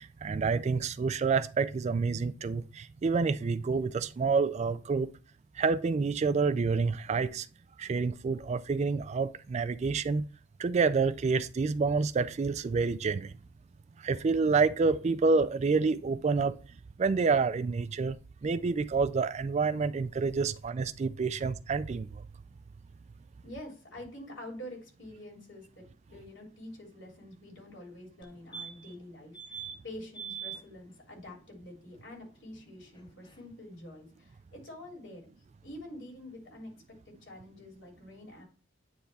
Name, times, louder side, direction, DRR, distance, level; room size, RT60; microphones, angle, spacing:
voice 1, 0.0-5.1 5.6-7.5 7.8-10.2 10.6-13.3 14.0-16.6 17.0-18.2 18.4-22.2, right 4 dB, 35° right, 0.3 m, -28 dB
voice 2, 23.4-35.3 35.6-36.7 37.1-38.4, left 1 dB, 70° left, 3.3 m, -47 dB
sound 1, 28.2-28.3 28.5-29.0 29.3-29.8 30.1-30.6 33.0-33.1 33.3-33.4, right 7 dB, 25° left, 0.7 m, -41 dB
9.6 x 3.4 x 4.1 m
head